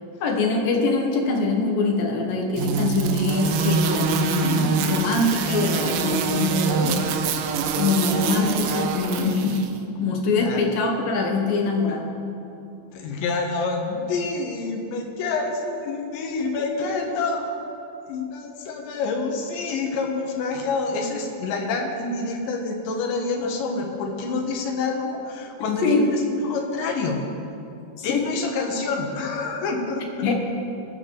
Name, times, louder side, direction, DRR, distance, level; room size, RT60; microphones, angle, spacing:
voice 1, 0.2-7.1 7.7-9.7 10.0-12.1 25.8-26.1 28.0-28.3 30.2-30.3, left 3 dB, 65° left, 1 dB, 2.8 m, -23 dB
sound 1, 2.6-9.7, right 5 dB, 75° right, 2.3 m, -25 dB
voice 2, 12.9-17.8 18.1-27.2 28.0-30.1, left 3 dB, 85° left, 1 dB, 3.7 m, -27 dB
22.0 x 10.0 x 3.9 m, 2.7 s
omnidirectional pair, 5.0 m